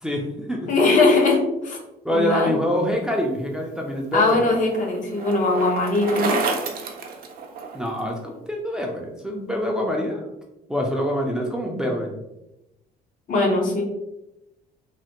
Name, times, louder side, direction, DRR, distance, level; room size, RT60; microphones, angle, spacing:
voice 1, 0.0-0.7 2.0-4.4 7.7-10.3 10.7-12.1, equal, 5° right, -1 dB, 0.4 m, -25 dB
voice 2, 0.7-1.8 2.1-2.5 4.1-6.4 13.3-13.8, left 2 dB, 50° left, 1 dB, 0.7 m, -20 dB
Bicycle, 3.6-8.0, right 4 dB, 60° right, 0.5 m, -30 dB
3.2 x 2.1 x 2.9 m, 0.91 s
cardioid pair, 110°, 17 cm